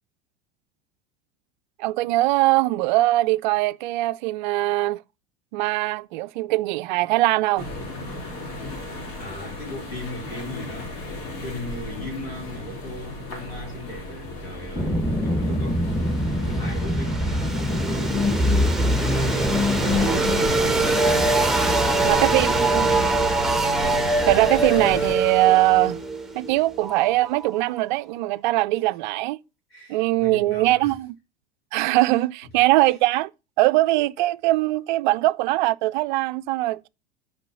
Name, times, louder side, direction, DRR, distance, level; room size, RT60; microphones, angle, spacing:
voice 1, 1.8-5.0 5.5-7.7 20.1-20.2 22.0-22.9 24.3-26.0 26.3-29.4 29.9-31.2 31.7-33.3 33.6-36.9, right 18 dB, 50° right, 0.4 m, -21 dB
sound 1, 7.6-25.1, left 1 dB, 60° left, 3.3 m, -34 dB
voice 2, 9.2-11.0 11.4-15.9 16.5-18.8 19.2-20.0 20.5-23.1 29.7-30.9, left 1 dB, 80° left, 4.2 m, -37 dB
sound 2, 14.8-27.6, right 1 dB, ahead, 1.0 m, -23 dB
6.7 x 5.5 x 7.0 m
figure-of-eight pair, 75°, 30 cm